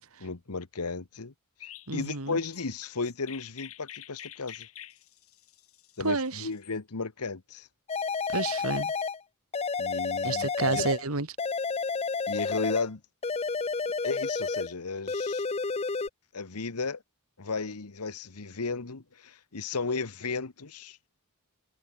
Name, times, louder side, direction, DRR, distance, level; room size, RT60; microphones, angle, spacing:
voice 1, 0.2-1.3 1.9-4.7 6.0-7.7 9.8-10.9 12.3-13.0 14.0-15.4 16.3-17.0 17.4-21.0, left 4 dB, 90° left, 1.3 m, -34 dB
Chirp tweet, 1.6-6.7, left 11 dB, 70° left, 4.6 m, -47 dB
voice 2, 1.9-2.4 6.0-6.5 8.3-8.9 10.2-11.3, right 3 dB, 70° right, 2.1 m, -30 dB
sound 1, 7.9-9.2 9.5-11.1 11.4-12.9 13.2-14.7 15.1-16.1, left 4 dB, 30° left, 0.6 m, -30 dB
head